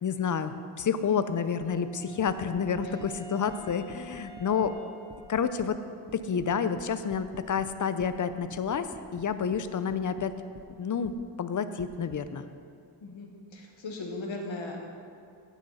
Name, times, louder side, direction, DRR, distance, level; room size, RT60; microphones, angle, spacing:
voice 1, 0.0-4.7 5.3-5.8 6.1-10.3 10.8-11.1 11.4-12.5, left 6 dB, 45° left, 11 dB, 0.5 m, -29 dB
Wind instrument woodwind instrument, 1.3-6.1, right 1 dB, 10° left, 1.4 m, -50 dB
sound 1, 1.6-1.8 2.2-3.1 3.5-4.8 5.1-5.7 6.1-7.7 8.0-10.7 11.0-11.2 11.8-12.2, right 4 dB, 25° right, 0.5 m, -50 dB
voice 2, 13.0-14.8, left 2 dB, 90° left, 1 dB, 1.7 m, -38 dB
15.5 x 6.9 x 4.1 m, 2.5 s
wide cardioid pair, 150°, 45 cm